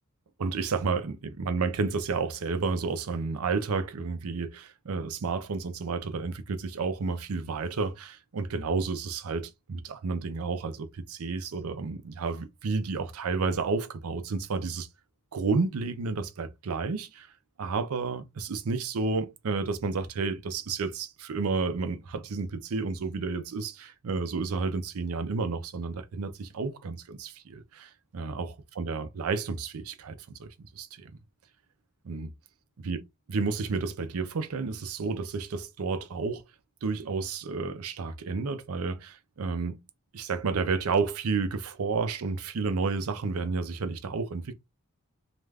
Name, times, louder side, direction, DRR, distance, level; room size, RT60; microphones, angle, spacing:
voice 1, 0.4-14.9 15.3-17.3 17.6-31.1 32.0-32.3 32.8-33.0 33.3-36.4 36.8-39.8 40.1-44.5, right 4 dB, 90° right, 0.5 m, -31 dB
2.4 x 2.3 x 3.2 m
head